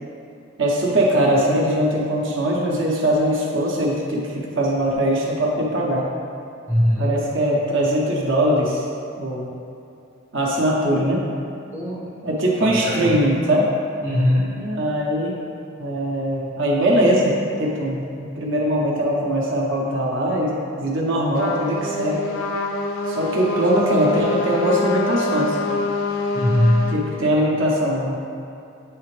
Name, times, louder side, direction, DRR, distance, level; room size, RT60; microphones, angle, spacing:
voice 1, 0.6-6.1 7.0-8.8 9.2-9.5 10.3-11.2 12.2-13.7 14.6-15.3 15.8-22.2 23.1-25.6 26.9-28.2, right 1 dB, 60° right, -3 dB, 1.0 m, -21 dB
voice 2, 6.7-7.2 11.7-12.1 12.6-13.1 14.0-14.6 26.3-27.1, left 1 dB, 10° right, -6 dB, 0.6 m, -21 dB
Trumpet, 21.3-27.0, left 3 dB, 75° left, 0.5 m, -25 dB
8.8 x 3.4 x 3.3 m, 2.6 s
head